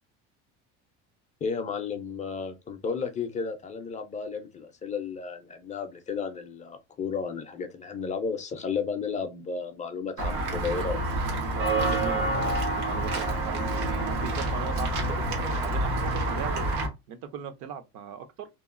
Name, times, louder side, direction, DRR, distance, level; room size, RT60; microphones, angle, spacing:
voice 1, 1.4-11.0, left 5 dB, 25° left, 0.4 m, -33 dB
Walk footsteps / Bell, 10.2-16.9, right 1 dB, 85° right, 1.2 m, -28 dB
voice 2, 11.5-15.2 15.6-16.8 17.1-18.5, right 8 dB, 65° right, 0.6 m, -38 dB
2.9 x 2.3 x 2.4 m
cardioid pair, 140°, 33 cm